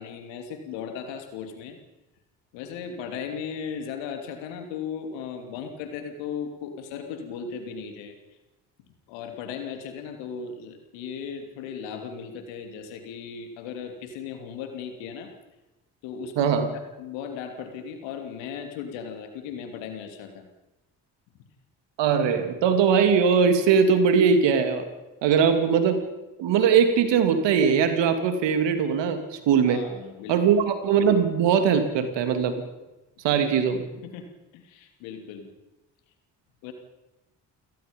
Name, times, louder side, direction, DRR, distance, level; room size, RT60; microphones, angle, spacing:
voice 1, 0.0-1.8 2.5-8.1 9.1-15.3 16.0-16.7 17.0-20.5 25.2-25.3 29.7-30.6 34.0-34.3 34.5-35.5 36.6-36.7, left 6 dB, 80° left, 5 dB, 3.0 m, -37 dB
voice 2, 16.4-16.7 22.0-24.8 25.2-26.0 26.4-29.2 29.5-29.9 30.3-32.6 33.2-33.8, right 6 dB, 70° right, 8 dB, 2.8 m, -21 dB
29.5 x 17.0 x 5.3 m, 1.0 s
hypercardioid pair, 50°, 45 cm